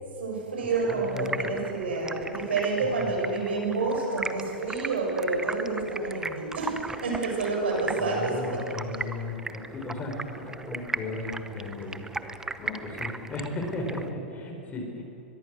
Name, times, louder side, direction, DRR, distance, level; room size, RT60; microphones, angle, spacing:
voice 1, 0.2-8.6, right 3 dB, 80° right, -1 dB, 7.5 m, -29 dB
Stream, 0.7-14.1, right 3 dB, 10° right, 0.8 m, -38 dB
voice 2, 0.9-1.6 3.0-3.1 8.0-12.1 12.6-15.0, left 2 dB, 25° left, 1 dB, 5.3 m, -35 dB
23.0 x 21.5 x 6.6 m, 2.9 s
hypercardioid pair, 115°, 6 cm